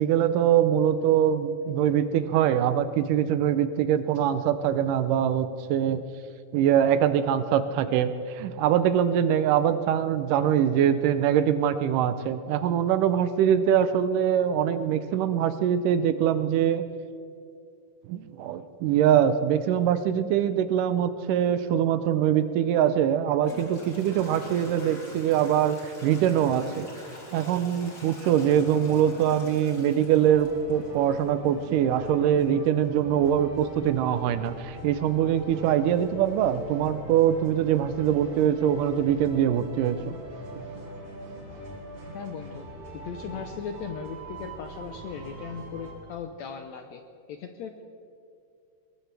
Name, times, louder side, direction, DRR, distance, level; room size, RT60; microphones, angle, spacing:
voice 1, 0.0-6.0 6.5-16.8 18.1-26.9 27.3-40.1, right 9 dB, 80° right, 11 dB, 2.1 m, -23 dB
Toilet flush / Trickle dribble, 22.6-22.7 23.4-31.2, left 1 dB, 35° left, 3.2 m, -45 dB
sound 1, 30.2-45.9, right 1 dB, 60° right, 5.2 m, -42 dB
voice 2, 42.1-42.7 43.0-47.0 47.3-47.8, left 7 dB, 75° left, 6 dB, 1.7 m, -38 dB
22.5 x 19.0 x 3.4 m, 2.5 s
omnidirectional pair, 3.9 m